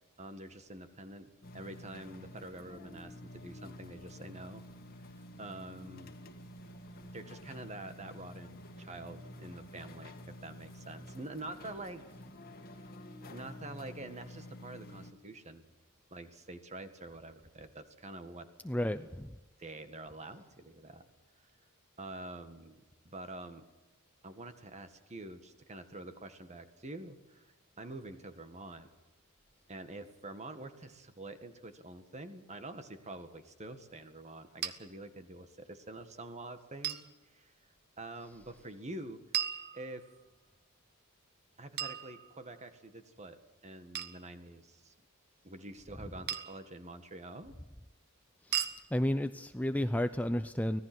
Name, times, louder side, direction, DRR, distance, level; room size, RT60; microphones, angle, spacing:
voice 1, 0.2-4.6 5.4-6.1 7.1-12.0 12.8-12.9 13.3-15.7 16.1-18.5 19.6-21.1 22.0-23.6 24.2-28.9 29.7-37.5 38.0-39.2 39.7-40.1 41.6-44.9 45.4-47.6, right 2 dB, 30° right, 9 dB, 1.8 m, -47 dB
sound 1, 1.4-15.1, left 1 dB, 45° left, 1.9 m, -50 dB
voice 2, 18.6-19.3 48.5-50.8, left 1 dB, 5° left, 10 dB, 0.6 m, -32 dB
sound 2, 34.6-34.7 36.8-37.1 39.3-40.2 41.8-42.7 43.9-44.2 46.3-46.7 48.5-48.8, right 10 dB, 45° right, 1.5 m, -36 dB
25.0 x 18.0 x 6.2 m, 1.1 s
head